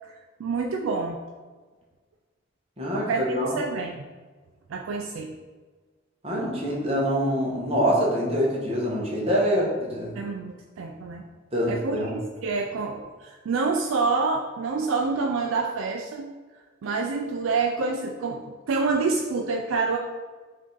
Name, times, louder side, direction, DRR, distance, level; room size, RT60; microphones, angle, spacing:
voice 1, 0.1-1.2 2.9-4.0 4.7-5.3 10.2-11.2 11.7-16.3 16.8-20.0, right 4 dB, 90° right, 2 dB, 0.4 m, -27 dB
voice 2, 2.8-3.5 6.2-10.1 11.5-12.1, equal, 30° right, -4 dB, 1.0 m, -25 dB
4.9 x 2.7 x 3.8 m, 1.4 s
head